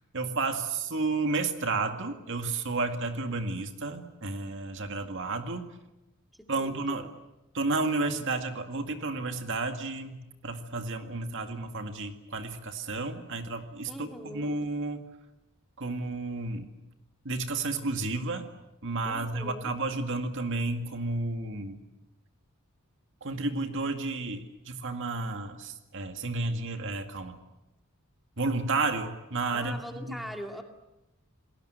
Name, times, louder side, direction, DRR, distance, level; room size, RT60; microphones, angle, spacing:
voice 1, 0.1-5.7 6.5-7.1 7.5-15.0 15.8-16.7 17.2-18.5 18.8-21.8 23.2-27.4 28.4-30.3, right 3 dB, 60° right, 6 dB, 2.1 m, -32 dB
voice 2, 6.4-7.1 13.9-14.6 19.0-19.7 29.5-30.6, equal, ahead, 3 dB, 2.4 m, -42 dB
29.0 x 20.5 x 7.9 m, 0.95 s
head